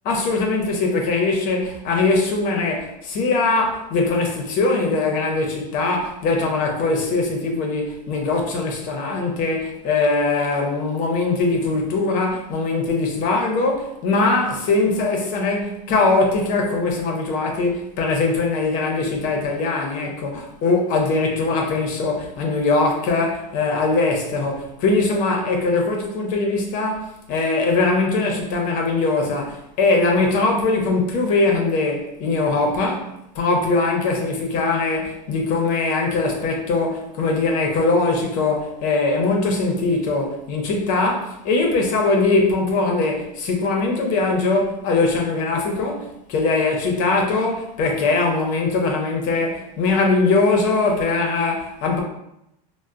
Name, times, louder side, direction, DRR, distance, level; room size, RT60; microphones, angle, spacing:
voice 1, 0.1-52.0, left 3 dB, 40° left, 0.7 m, -21 dB
4.2 x 2.1 x 2.4 m
supercardioid pair, 155°, 21 cm